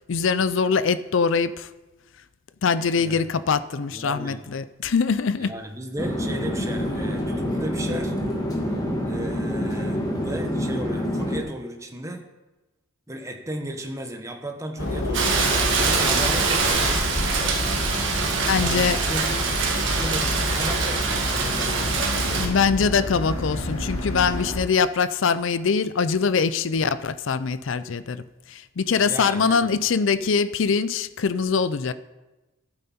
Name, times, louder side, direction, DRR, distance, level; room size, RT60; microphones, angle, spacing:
voice 1, 0.1-1.7 2.6-5.5 18.4-19.0 22.3-31.9, left 5 dB, 65° left, 15 dB, 0.5 m, -23 dB
voice 2, 3.9-4.4 5.4-8.2 9.0-12.2 13.1-17.1 18.5-19.5 19.8-22.2 29.0-29.7, right 1 dB, 15° right, 4 dB, 1.0 m, -35 dB
Chatter / Fixed-wing aircraft airplane, 6.0-11.4, equal, 20° left, 1.6 m, -27 dB
sound 1, 14.8-24.6, left 1 dB, 80° left, 1.9 m, -29 dB
Rain, 15.1-22.5, right 4 dB, 60° right, 1.8 m, -24 dB
12.0 x 9.1 x 4.3 m, 1.1 s
head